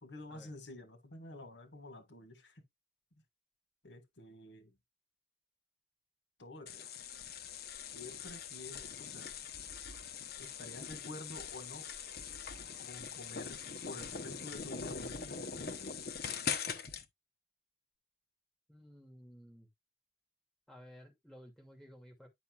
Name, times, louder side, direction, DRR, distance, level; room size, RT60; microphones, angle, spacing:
voice 1, 0.0-2.6 3.8-4.7 6.4-6.9 7.9-9.3 10.4-11.9 12.8-15.9, left 2 dB, 75° left, 1.7 m, -49 dB
sound 1, 6.7-17.0, left 6 dB, 55° left, 1.0 m, -42 dB
voice 2, 18.7-19.7 20.7-22.3, equal, ahead, 2.5 m, -55 dB
10.0 x 5.6 x 2.4 m
head